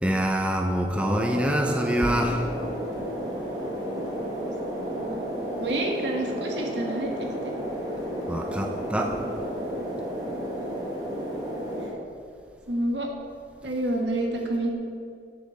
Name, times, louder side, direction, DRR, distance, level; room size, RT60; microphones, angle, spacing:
voice 1, 0.0-2.4 8.3-9.2, equal, 5° right, 3 dB, 0.5 m, -25 dB
sound 1, 1.0-11.9, equal, 20° right, 1.3 m, -32 dB
voice 2, 4.9-7.5 12.7-13.1 13.6-14.7, right 1 dB, 85° right, 1 dB, 1.4 m, -29 dB
7.7 x 6.7 x 6.8 m, 2.3 s
head